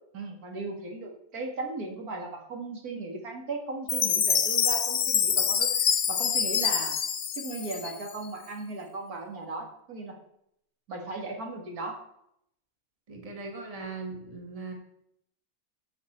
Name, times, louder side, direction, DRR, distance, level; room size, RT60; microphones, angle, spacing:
voice 1, 0.1-6.9 7.4-10.2 10.9-12.0, right 3 dB, 75° right, 1 dB, 2.1 m, -37 dB
Chime, 3.9-8.3, left 7 dB, 55° left, 0.6 m, -26 dB
voice 2, 13.1-14.7, right 3 dB, 25° right, 2 dB, 1.5 m, -39 dB
12.0 x 6.1 x 4.2 m, 0.75 s
omnidirectional pair, 1.6 m